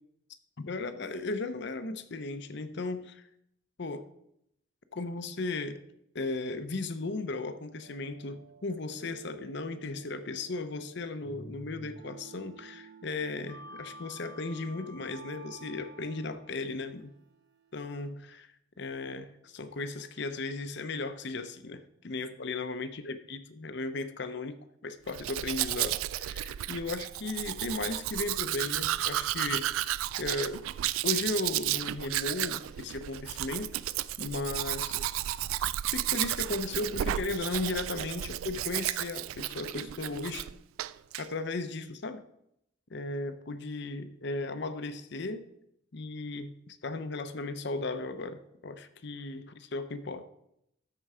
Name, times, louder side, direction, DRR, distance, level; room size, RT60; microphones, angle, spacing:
voice 1, 0.6-3.2 3.8-4.0 4.9-5.8 6.1-17.1 17.7-18.5 18.8-29.6 30.2-30.7 31.0-33.7 34.2-35.1 35.9-40.5 41.2-42.2 42.9-45.4 45.9-50.3, left 3 dB, 55° left, 11 dB, 0.7 m, -36 dB
sound 1, 7.8-17.9, right 3 dB, 55° right, 0.9 m, -51 dB
Domestic sounds home sounds, 25.1-40.5 40.8-41.2, right 13 dB, 85° right, 0.3 m, -33 dB
13.0 x 4.6 x 4.8 m, 0.77 s
head